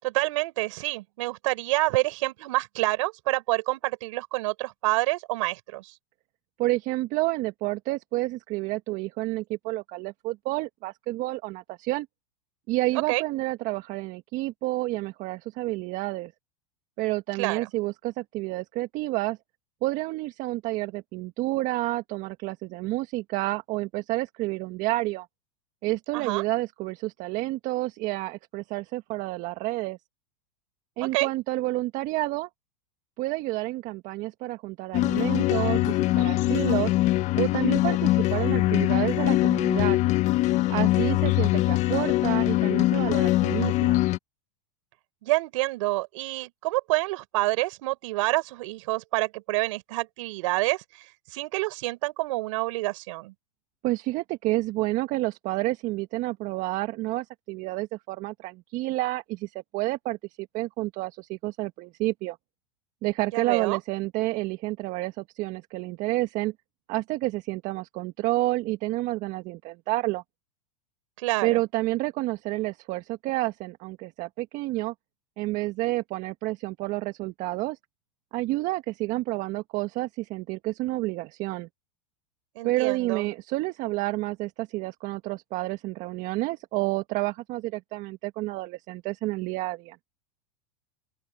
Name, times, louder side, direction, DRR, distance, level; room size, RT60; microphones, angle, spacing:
voice 1, 0.0-5.9 13.1-13.2 17.4-17.7 26.1-26.4 31.0-31.3 45.2-50.8 51.3-53.3 63.3-63.8 71.2-71.6 82.6-83.3, right 21 dB, 65° right, 5.4 m, -27 dB
voice 2, 6.6-12.1 12.7-16.3 17.0-19.4 19.8-25.3 25.8-30.0 31.0-32.5 33.2-36.9 37.3-40.0 40.7-44.0 53.8-62.4 63.0-66.5 66.9-70.2 71.4-74.9 75.4-77.8 78.3-81.7 82.6-90.0, right 19 dB, 50° right, 1.3 m, -29 dB
sound 1, 34.9-44.2, left 17 dB, 45° left, 1.2 m, -23 dB
open air
hypercardioid pair, 115°, 17 cm